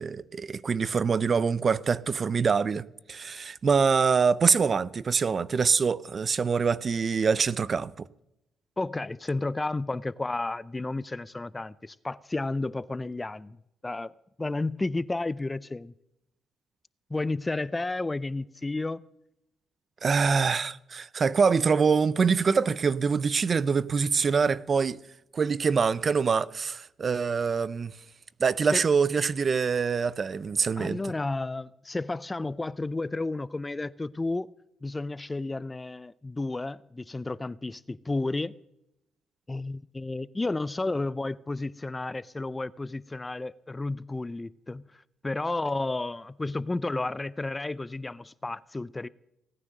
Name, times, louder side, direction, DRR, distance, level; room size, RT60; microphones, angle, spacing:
voice 1, 0.0-8.1 20.0-25.0 25.3-27.9 28.4-31.0, right 5 dB, 40° right, 0.5 m, -25 dB
voice 2, 8.8-13.6 13.8-14.1 14.4-15.9 17.1-19.0 28.7-28.8 30.8-34.5 34.8-38.5 39.5-49.1, left 2 dB, 20° left, 0.4 m, -32 dB
17.5 x 9.8 x 6.5 m
cardioid pair, 90°, 0 cm